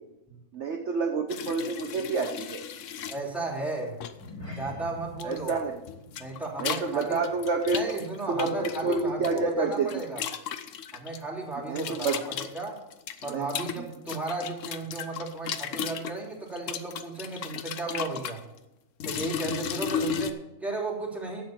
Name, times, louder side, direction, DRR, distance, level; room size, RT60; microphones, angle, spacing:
voice 1, 0.5-2.6 5.2-5.8 6.6-9.9 11.7-12.2 13.3-13.5 13.8-13.9, right 4 dB, 55° right, 3 dB, 1.1 m, -28 dB
sound 1, 1.3-3.2 4.0-4.3 5.2-5.6 5.8-9.4 9.7-11.2 11.7-16.1 16.6-18.4 19.0-20.3, left 7 dB, 60° left, 1.0 m, -34 dB
voice 2, 3.1-4.0 4.5-5.6 6.2-7.2 7.7-10.2 10.9-12.8 13.2-18.4 19.0-21.5, right 3 dB, ahead, -4 dB, 3.1 m, -35 dB
sound 2, 4.1-8.7 9.0-9.3 9.7-9.8, left 2 dB, 40° left, 4.2 m, -46 dB
10.5 x 7.6 x 6.0 m, 0.92 s
omnidirectional pair, 1.6 m